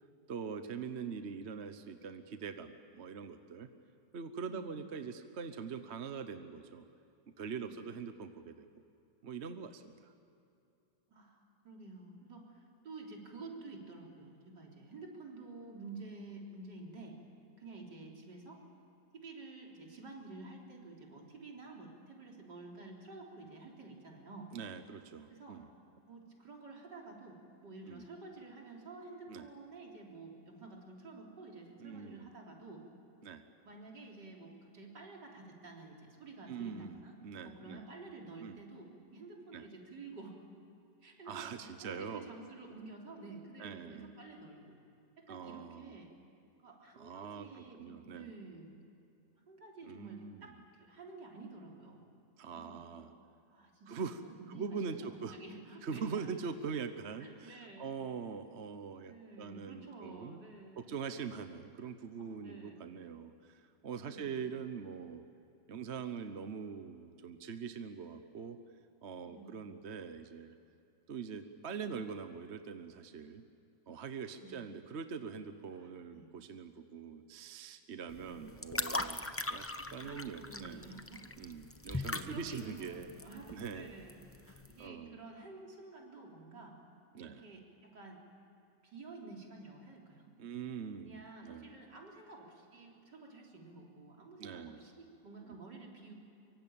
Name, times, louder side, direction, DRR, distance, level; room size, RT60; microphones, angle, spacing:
voice 1, 0.3-3.7 4.1-6.8 7.4-8.7 9.2-10.1 24.5-25.7 27.9-28.0 29.3-29.5 31.8-32.3 33.2-33.5 36.5-37.8 38.4-38.6 39.5-39.6 41.3-42.3 43.6-44.1 45.3-46.0 47.0-48.3 49.8-50.4 52.4-53.1 53.9-54.2 54.5-55.4 55.8-60.4 60.8-65.2 65.7-68.6 69.0-70.6 71.1-73.4 73.9-79.6 79.9-80.9 81.4-83.1 83.5-83.9 84.5-85.2 87.1-87.4 90.4-91.7 94.4-94.8, right 6 dB, 45° right, 9 dB, 1.1 m, -43 dB
voice 2, 11.1-11.4 11.6-17.2 17.6-18.6 19.1-24.5 25.3-25.6 26.1-32.9 33.6-37.1 37.4-40.4 41.0-44.8 45.2-46.1 46.6-48.7 49.4-52.0 52.5-52.8 53.5-56.3 57.2-57.9 59.1-60.9 62.2-62.8 63.9-64.4 69.2-69.6 74.3-74.7 75.8-76.3 78.2-78.5 79.8-81.2 81.9-86.8 87.2-88.2 88.8-90.3 91.0-96.1, right 3 dB, 65° right, 0 dB, 4.3 m, -51 dB
sound 1, 78.1-84.8, left 2 dB, 20° left, 0.3 m, -41 dB
25.0 x 24.0 x 8.9 m, 2.7 s
omnidirectional pair, 2.0 m